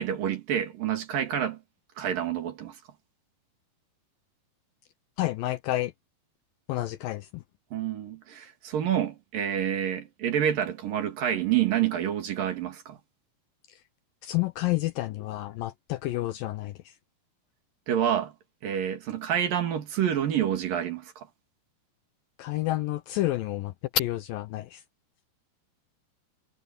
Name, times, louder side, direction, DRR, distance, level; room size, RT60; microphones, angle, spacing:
voice 1, 0.0-1.6 2.0-2.8 7.7-13.0 17.9-18.3 18.6-21.3, right 10 dB, 60° right, 3.7 m, -28 dB
voice 2, 5.2-5.9 6.7-7.4 14.2-16.9 22.4-24.8, left 15 dB, 80° left, 2.1 m, -29 dB
omnidirectional pair, 4.6 m